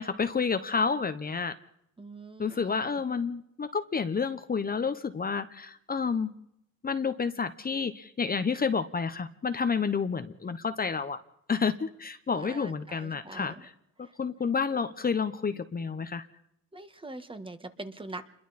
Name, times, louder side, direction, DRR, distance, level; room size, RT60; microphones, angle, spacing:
voice 1, 0.0-1.6 2.4-6.3 6.8-11.2 11.5-13.7 14.0-16.3, left 5 dB, 30° left, 10 dB, 1.0 m, -30 dB
voice 2, 2.0-2.9 12.3-13.7 14.0-14.1 16.7-18.2, right 2 dB, 15° right, 9 dB, 1.7 m, -43 dB
28.0 x 22.0 x 4.3 m, 0.76 s
cardioid pair, 90°, 30 cm